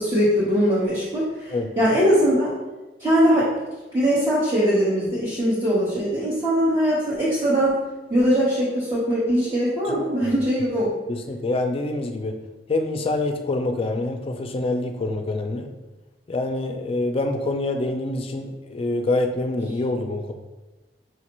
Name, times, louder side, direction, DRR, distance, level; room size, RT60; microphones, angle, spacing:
voice 1, 0.0-2.5 3.0-3.5 3.9-7.7 8.1-10.9, equal, 30° right, -11 dB, 1.2 m, -21 dB
voice 2, 11.1-12.4 12.7-15.7 16.3-20.3, left 2 dB, 30° left, 5 dB, 0.4 m, -26 dB
6.0 x 2.5 x 3.0 m, 1.1 s
head